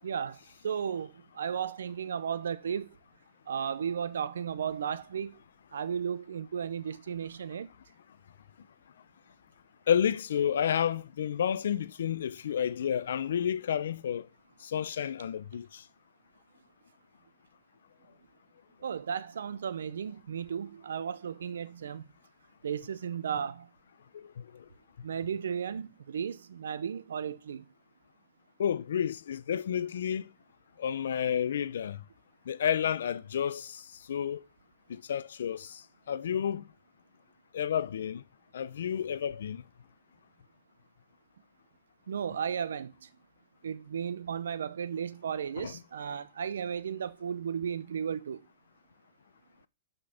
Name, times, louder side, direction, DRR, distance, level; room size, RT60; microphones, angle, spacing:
voice 1, 0.0-0.4 0.6-2.9 3.5-5.3 5.7-7.7 18.8-22.0 22.6-23.7 25.0-27.6 42.1-42.9 43.6-48.4, right 7 dB, 85° right, 0.6 m, -34 dB
voice 2, 9.9-14.3 14.6-15.9 24.1-24.7 28.6-30.3 30.8-32.0 32.5-34.4 34.9-36.7 37.5-38.2 38.5-39.6 45.6-45.8, left 8 dB, 75° left, 0.6 m, -31 dB
6.2 x 5.2 x 5.8 m
hypercardioid pair, 135°, 0 cm